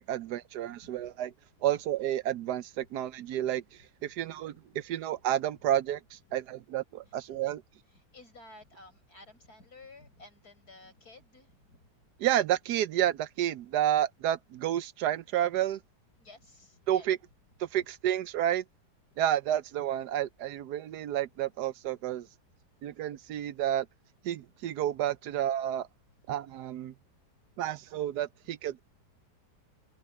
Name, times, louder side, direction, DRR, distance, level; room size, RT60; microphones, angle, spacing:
voice 1, 0.0-1.3 1.6-7.6 12.2-15.8 16.9-17.2 17.6-18.6 19.2-22.3 22.8-23.9 24.2-25.9 26.3-26.9 27.6-28.8, right 11 dB, 75° right, 1.2 m, -30 dB
voice 2, 0.7-1.1 4.5-4.6 7.0-7.1 7.9-11.9 16.2-17.1 19.1-19.2, left 2 dB, 65° left, 7.8 m, -54 dB
omnidirectional pair, 1.8 m